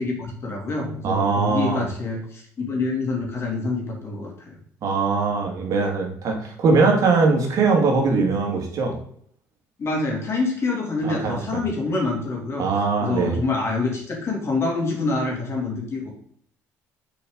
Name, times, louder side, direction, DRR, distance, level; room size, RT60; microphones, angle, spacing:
voice 1, 0.0-4.6 9.8-12.7 13.0-16.1, left 3 dB, 40° left, 0 dB, 2.8 m, -26 dB
voice 2, 1.0-1.8 4.8-9.0 11.0-11.6 12.6-13.4, right 4 dB, 55° right, 1 dB, 2.2 m, -21 dB
6.6 x 5.3 x 3.8 m, 0.62 s
supercardioid pair, 90°, 7 cm